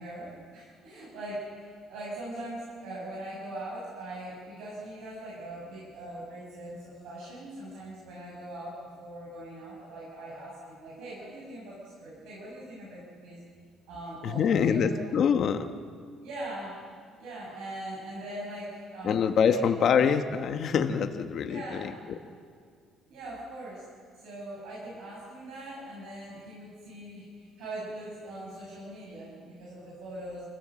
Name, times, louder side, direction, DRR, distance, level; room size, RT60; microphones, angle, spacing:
voice 1, 0.0-13.4 13.9-15.0 16.2-16.8 17.2-19.2 19.5-20.1 21.5-21.9 23.1-23.8 24.1-30.5, right 1 dB, 75° right, -6 dB, 7.4 m, -41 dB
voice 2, 14.3-15.6 19.0-21.9, left 7 dB, 40° left, 7 dB, 1.3 m, -25 dB
28.0 x 16.5 x 7.6 m, 2.1 s
cardioid pair, 180°, 0 cm